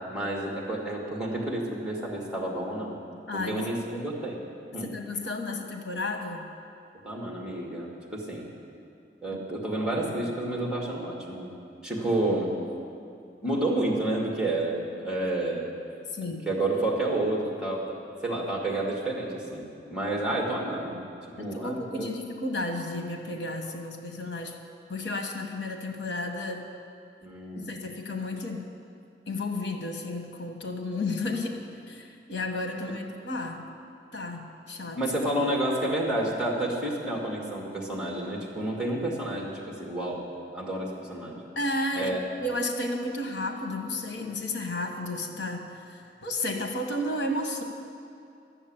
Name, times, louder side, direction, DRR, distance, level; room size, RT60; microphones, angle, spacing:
voice 1, 0.1-3.0 3.3-4.4 4.7-4.9 7.0-8.5 9.2-11.5 11.8-12.6 13.4-15.7 16.5-21.0 21.4-22.1 27.2-27.7 35.0-40.3 40.5-41.4 42.0-42.2, right 1 dB, 5° right, -2 dB, 2.0 m, -30 dB
voice 2, 3.3-3.7 4.8-6.5 16.1-16.5 21.4-24.6 24.9-26.7 27.5-28.7 29.3-33.7 34.1-35.0 41.5-47.6, left 2 dB, 80° left, 4 dB, 1.2 m, -32 dB
12.5 x 7.2 x 8.6 m, 2.5 s
head